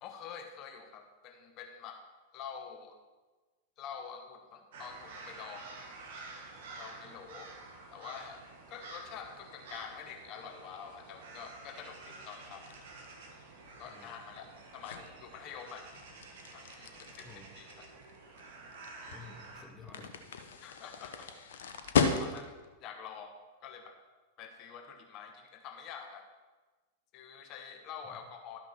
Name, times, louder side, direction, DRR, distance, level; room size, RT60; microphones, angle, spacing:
voice 1, 0.0-2.0 2.3-2.9 3.8-5.7 6.8-7.5 7.9-8.4 8.7-12.7 13.8-15.9 16.5-17.3 17.5-17.9 20.6-21.3 22.2-22.5 22.8-24.0 24.4-26.3 27.1-28.6, left 7 dB, 40° left, 5 dB, 1.1 m, -47 dB
sound 1, 4.7-19.6, right 3 dB, 55° right, 1.3 m, -50 dB
sound 2, 12.3-22.7, left 5 dB, 60° left, 0.8 m, -37 dB
voice 2, 13.8-14.2 17.2-17.6 19.1-20.3 28.1-28.2, left 2 dB, 10° left, 2 dB, 1.0 m, -53 dB
12.0 x 5.9 x 4.3 m, 1.3 s
figure-of-eight pair, 90°, 0 cm